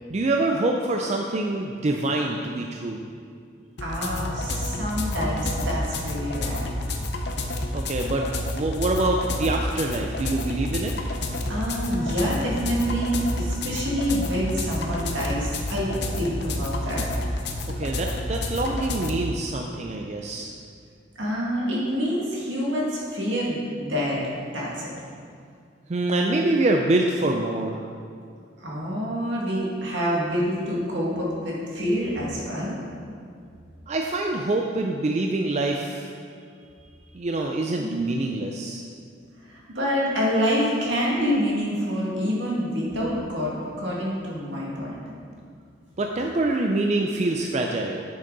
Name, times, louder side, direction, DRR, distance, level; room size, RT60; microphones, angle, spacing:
voice 1, 0.1-3.0 7.7-8.2 8.5-10.9 17.8-20.5 25.9-27.8 33.9-36.1 37.1-38.8 46.0-48.0, right 2 dB, 35° right, 2 dB, 0.4 m, -25 dB
sound 1, 3.8-19.1, left 1 dB, 60° left, 0.7 m, -29 dB
voice 2, 3.8-6.7 11.5-17.0 21.2-24.9 28.6-32.7 37.7-38.2 39.5-44.9, equal, 75° right, -5 dB, 2.1 m, -27 dB
9.6 x 6.6 x 3.9 m, 2.3 s
head